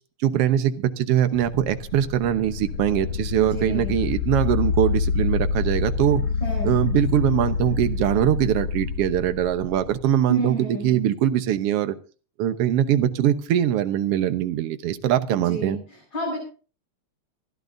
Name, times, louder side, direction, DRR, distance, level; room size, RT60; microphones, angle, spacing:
voice 1, 0.2-6.2 6.6-11.9 12.4-15.8, right 11 dB, 65° right, 9 dB, 1.8 m, -22 dB
sound 1, 1.3-10.1, left 5 dB, 70° left, 2.3 m, -27 dB
voice 2, 3.4-4.0 6.4-6.7 10.3-11.0 15.3-16.4, right 2 dB, 40° left, -6 dB, 8.1 m, -30 dB
27.0 x 12.5 x 2.6 m, 0.38 s
omnidirectional pair, 3.3 m